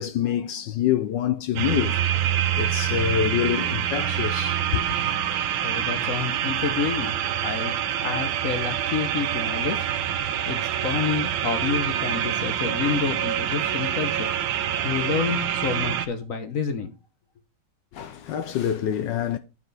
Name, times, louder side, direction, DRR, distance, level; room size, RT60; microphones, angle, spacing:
voice 1, 0.0-2.0 2.5-4.8 17.9-19.4, left 10 dB, 75° left, 1.1 m, -26 dB
sound 1, 1.6-16.1, right 10 dB, 70° right, 1.5 m, -26 dB
voice 2, 5.6-9.8 10.5-14.3 14.8-16.9, left 6 dB, 55° left, 0.9 m, -29 dB
8.8 x 6.5 x 4.0 m
omnidirectional pair, 2.3 m